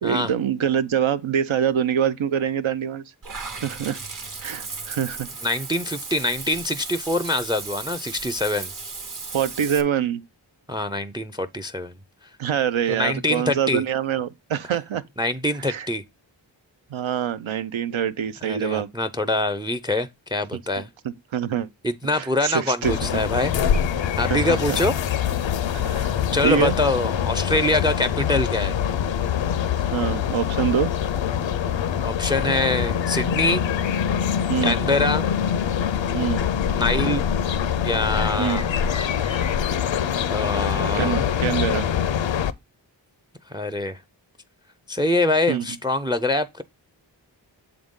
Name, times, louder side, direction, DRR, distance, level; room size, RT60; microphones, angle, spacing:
voice 1, 0.0-3.0 3.6-4.0 4.4-5.3 9.3-10.2 12.4-15.0 15.6-15.9 16.9-18.9 21.0-21.7 22.1-23.2 24.3-24.6 25.8-26.1 26.4-26.8 29.9-30.9 34.5-34.8 36.1-36.5 38.4-38.7 40.9-41.9 45.5-45.7, right 9 dB, 85° right, 0.6 m, -25 dB
Water / Bathtub (filling or washing), 3.2-9.8, right 4 dB, 45° right, 0.8 m, -35 dB
voice 2, 5.4-8.7 10.7-11.9 12.9-13.8 15.2-16.0 18.4-20.9 21.8-23.5 24.2-24.9 26.3-28.8 32.0-33.6 34.6-35.3 36.8-37.3 37.8-38.7 40.3-41.2 43.5-44.0 44.9-46.6, left 2 dB, 10° right, 0.3 m, -24 dB
sound 1, 22.8-42.5, left 8 dB, 75° left, 0.5 m, -24 dB
7.1 x 3.9 x 3.6 m
wide cardioid pair, 65°, 46 cm